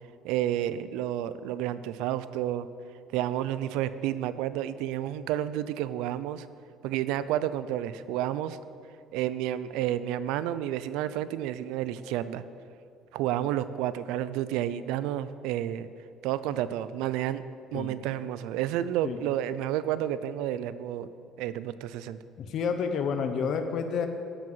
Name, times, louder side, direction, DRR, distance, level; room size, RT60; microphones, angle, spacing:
voice 1, 0.2-2.7 3.1-6.5 6.8-8.6 9.1-12.4 13.1-15.9 16.2-17.4 17.7-21.1 21.4-22.2, right 12 dB, 90° right, 14 dB, 0.5 m, -30 dB
voice 2, 22.4-24.1, left 6 dB, 50° left, 6 dB, 0.9 m, -29 dB
13.5 x 7.8 x 5.7 m, 2.4 s
cardioid pair, 145°, 0 cm